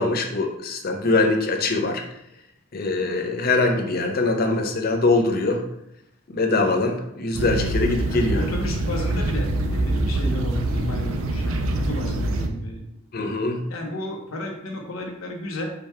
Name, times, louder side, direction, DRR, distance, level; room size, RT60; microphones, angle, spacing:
voice 1, 0.0-2.0 2.7-5.6 6.3-8.4 13.1-13.6, left 3 dB, 45° left, 4 dB, 0.6 m, -22 dB
sound 1, 7.3-12.5, right 1 dB, 70° right, 0.5 m, -25 dB
voice 2, 8.1-12.8 13.7-15.7, left 1 dB, 75° left, 0 dB, 0.9 m, -32 dB
5.1 x 2.3 x 4.3 m, 0.80 s
head